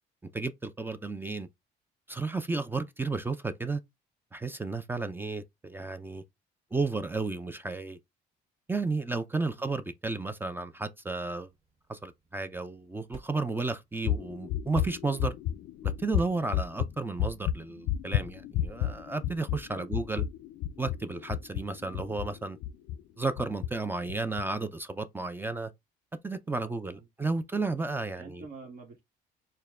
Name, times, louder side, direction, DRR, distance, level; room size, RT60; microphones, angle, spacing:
voice 1, 0.2-1.5 2.1-3.8 4.3-6.2 6.7-8.0 8.7-11.5 11.9-15.4 15.8-20.2 20.8-22.6 23.2-25.7 26.2-28.4, right 3 dB, 10° right, 0.4 m, -33 dB
sound 1, 11.4-18.5, right 4 dB, 35° right, 2.0 m, -54 dB
sound 2, 14.0-23.0 23.4-23.7 24.1-24.4, left 11 dB, 75° left, 0.4 m, -32 dB
voice 2, 21.8-22.1 26.5-27.1 28.2-29.0, right 4 dB, 55° right, 1.3 m, -48 dB
4.4 x 2.2 x 3.5 m
cardioid pair, 110°, 17 cm